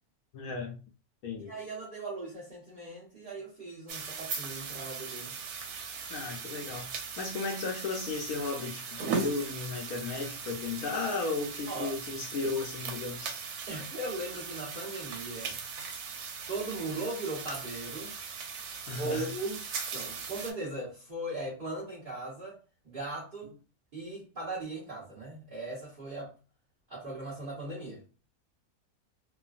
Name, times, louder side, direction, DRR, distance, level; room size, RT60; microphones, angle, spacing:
voice 1, 0.3-0.8 1.2-1.5 6.1-6.9 7.2-13.4 18.9-19.3, left 4 dB, 75° left, 1.0 m, -35 dB
voice 2, 1.4-5.4 11.7-11.9 13.7-15.6 16.5-18.1 19.0-19.6 19.9-22.6 22.8-23.5 23.9-26.3 26.9-28.0, right 2 dB, 40° right, 1.0 m, -38 dB
sound 1, 3.9-20.5, right 5 dB, 85° right, 1.2 m, -39 dB
3.1 x 2.2 x 2.4 m
omnidirectional pair, 1.6 m